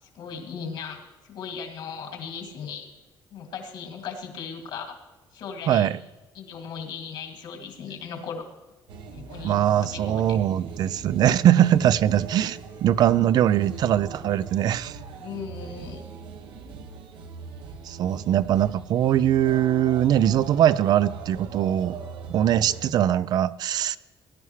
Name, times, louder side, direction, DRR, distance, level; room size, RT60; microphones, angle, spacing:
voice 1, 0.1-2.9 3.3-5.0 5.3-5.9 6.3-8.5 9.1-10.4 15.2-16.0, left 6 dB, 70° left, 3 dB, 2.4 m, -37 dB
voice 2, 5.7-6.0 9.4-15.0 17.8-21.9 22.3-24.0, right 11 dB, 60° right, 16 dB, 0.4 m, -21 dB
sound 1, 8.9-22.9, right 5 dB, 75° right, 1.1 m, -40 dB
18.5 x 11.0 x 3.2 m, 1.1 s
cardioid pair, 140°, 8 cm